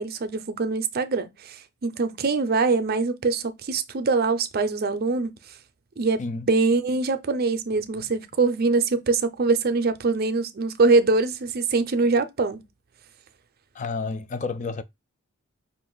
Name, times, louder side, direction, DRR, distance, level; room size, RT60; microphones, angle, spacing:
voice 1, 0.0-5.3 6.0-12.6, right 3 dB, 45° right, 0.5 m, -23 dB
voice 2, 13.7-14.8, left 4 dB, 35° left, 0.4 m, -30 dB
5.1 x 2.5 x 3.8 m
head